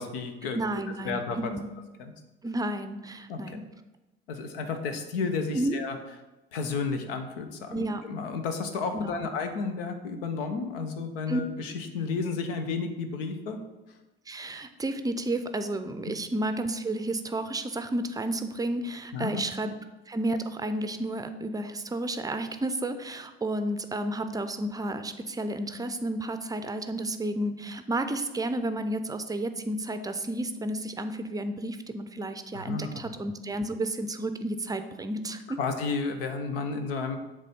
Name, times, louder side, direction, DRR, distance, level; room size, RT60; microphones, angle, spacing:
voice 1, 0.0-0.6 1.0-1.5 2.0-2.1 3.3-3.6 4.3-6.0 6.5-13.6 13.9-14.0 16.0-16.1 19.1-19.4 32.5-32.9 35.6-37.2, left 4 dB, 70° left, 7 dB, 0.9 m, -32 dB
voice 2, 0.5-1.7 2.4-3.6 5.5-5.8 7.7-8.0 8.9-9.3 11.3-11.4 14.3-19.7 20.1-35.6, right 1 dB, 10° right, 9 dB, 0.6 m, -31 dB
7.4 x 3.3 x 5.3 m, 1.1 s
figure-of-eight pair, 60°, 30 cm